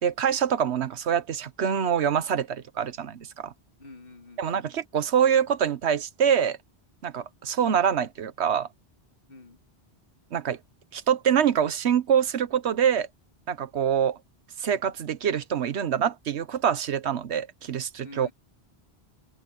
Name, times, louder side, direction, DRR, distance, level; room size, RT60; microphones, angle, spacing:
voice 1, 0.0-3.5 4.4-6.6 7.0-8.7 10.3-10.6 10.9-13.1 13.5-14.2 14.6-18.3, right 8 dB, 85° right, 1.2 m, -25 dB
voice 2, 3.8-4.7 9.3-9.6 18.0-18.3, left 2 dB, 55° left, 2.4 m, -47 dB
open air
omnidirectional pair, 1.1 m